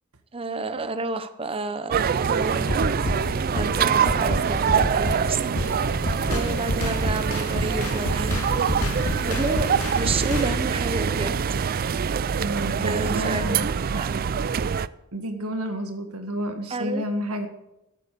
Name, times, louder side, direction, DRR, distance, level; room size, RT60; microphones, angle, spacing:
voice 1, 0.3-2.7 3.5-5.4 6.3-8.4 9.2-9.7 10.0-11.3 12.8-13.6 13.9-14.1 16.7-17.0, right 3 dB, 25° right, 10 dB, 0.7 m, -30 dB
sound 1, 1.9-14.9, right 6 dB, 40° right, 0.4 m, -25 dB
sound 2, 2.4-10.6, left 1 dB, 70° left, 2.2 m, -29 dB
voice 2, 12.4-13.7 13.9-14.1 15.1-17.5, right 1 dB, 75° right, 6 dB, 1.7 m, -30 dB
12.5 x 8.4 x 8.3 m, 0.90 s
head